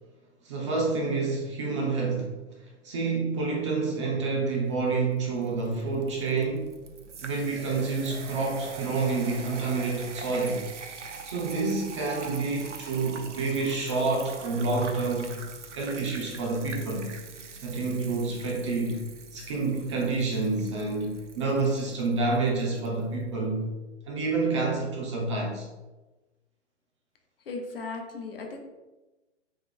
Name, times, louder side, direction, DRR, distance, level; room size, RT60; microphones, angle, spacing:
voice 1, 0.4-6.7 7.2-10.6 11.2-15.4 15.7-17.1 17.6-19.0 19.3-23.7 24.1-25.7, right 3 dB, 25° right, -1 dB, 0.5 m, -28 dB
sound 1, 4.9-22.9, right 5 dB, 75° right, 0.6 m, -43 dB
voice 2, 27.5-28.6, left 3 dB, 50° left, 3 dB, 0.8 m, -36 dB
3.3 x 3.2 x 3.6 m, 1.1 s
figure-of-eight pair, 120°, 36 cm